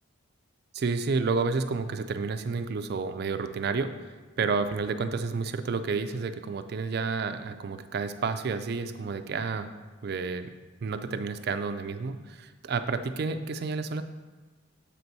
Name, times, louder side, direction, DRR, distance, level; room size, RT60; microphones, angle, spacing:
voice 1, 0.7-3.9 4.4-9.7 10.0-10.5 10.8-14.0, right 4 dB, 50° right, 9 dB, 0.3 m, -30 dB
7.4 x 4.0 x 4.6 m, 1.3 s
head